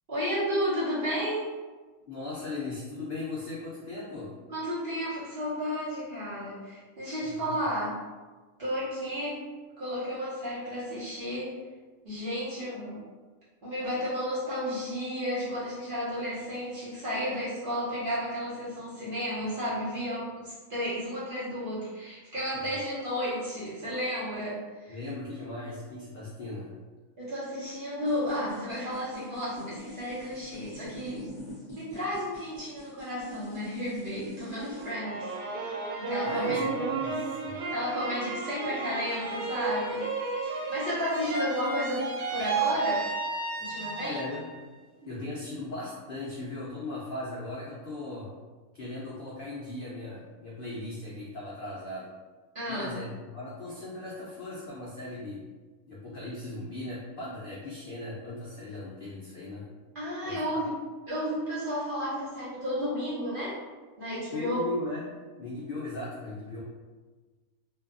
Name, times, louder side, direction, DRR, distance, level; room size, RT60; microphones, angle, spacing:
voice 1, 0.1-1.5 4.5-8.0 8.6-9.5 9.8-11.6 12.0-13.0 13.6-25.0 27.2-31.3 31.7-36.6 37.7-40.1 40.4-43.1 43.6-44.3 52.5-53.0 59.9-60.7 61.1-63.6 64.0-64.6, equal, 45° right, -10 dB, 0.8 m, -32 dB
voice 2, 2.1-4.3 7.2-7.6 22.5-22.8 24.9-26.8 36.2-37.6 43.7-44.6 45.0-48.3 48.7-52.1 52.7-55.4 55.9-59.7 60.2-60.6 64.3-65.1 65.4-66.6, left 2 dB, 70° left, -6 dB, 0.5 m, -38 dB
sound 1, 28.0-34.9, equal, 25° left, 0.6 m, -44 dB
sound 2, 34.8-44.6 45.0-45.7, right 4 dB, 65° right, 0.4 m, -33 dB
2.7 x 2.2 x 2.4 m, 1.3 s
omnidirectional pair, 1.5 m